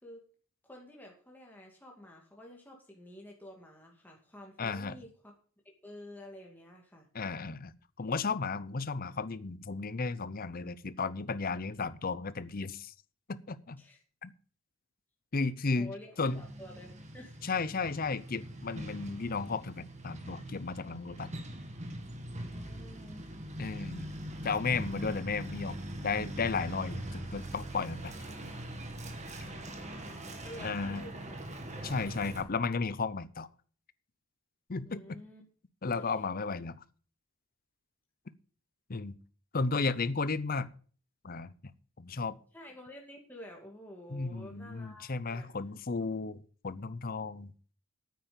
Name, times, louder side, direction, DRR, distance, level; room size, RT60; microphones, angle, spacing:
voice 1, 0.6-5.3 5.8-7.1 13.8-14.0 15.7-17.4 22.5-23.2 29.4-32.2 34.8-35.4 36.0-36.2 42.5-45.5, left 1 dB, 10° left, 0 dB, 2.3 m, -50 dB
voice 2, 4.6-5.0 7.1-12.9 13.3-13.8 14.2-14.3 15.3-15.9 16.2-16.4 17.4-21.3 23.6-24.1 24.4-28.1 30.6-31.0 31.8-33.5 34.7-35.0 35.8-36.8 38.9-39.2 39.5-40.7 41.2-41.5 42.0-42.4 44.1-47.5, left 4 dB, 40° left, 16 dB, 0.7 m, -34 dB
Truck, 16.2-32.4, right 1 dB, 30° right, 1.8 m, -42 dB
9.3 x 9.1 x 6.8 m, 0.42 s
head